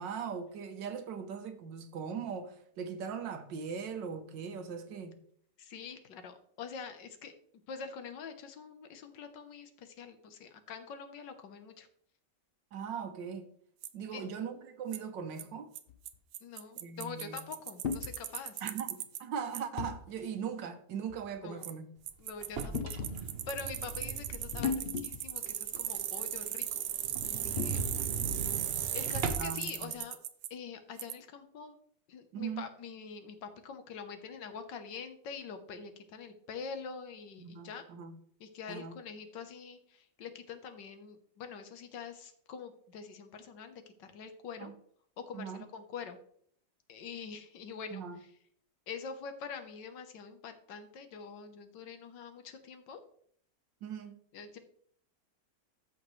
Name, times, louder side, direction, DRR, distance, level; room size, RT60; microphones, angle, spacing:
voice 1, 0.0-5.2 12.7-13.5 13.9-15.7 16.8-17.4 18.6-21.9 29.4-29.9 32.3-32.6 37.4-38.2 38.7-39.0 44.6-44.7 45.3-45.6 47.9-48.2 53.8-54.2, right 6 dB, 90° right, 1.7 m, -40 dB
voice 2, 5.6-7.3 7.7-11.9 14.1-14.3 16.4-18.7 21.4-21.7 22.2-26.7 27.3-28.2 28.9-30.2 30.5-31.8 32.1-37.8 38.4-44.7 45.3-46.2 46.9-48.3 48.9-53.0 54.3-54.6, left 6 dB, 80° left, 1.7 m, -45 dB
Bicycle, 13.8-13.9 14.9-15.0 15.4-15.5 15.8-15.9 16.1-16.2 16.3-19.2 19.5-19.6 21.6-21.7 22.1-30.5 31.0-31.1, right 11 dB, 75° right, 1.2 m, -37 dB
sound 1, 15.9-16.2 17.8-18.1 19.8-20.0 21.1-21.3 22.7-23.2 24.5-25.4 25.7-25.8 27.6-28.1, left 6 dB, 50° left, 0.7 m, -36 dB
sound 2, 22.4-25.0 25.4-25.5 25.9-26.0 26.3-26.4 26.6-26.7 27.0-29.7, right 5 dB, 45° right, 0.8 m, -39 dB
13.5 x 5.8 x 3.2 m
omnidirectional pair, 1.9 m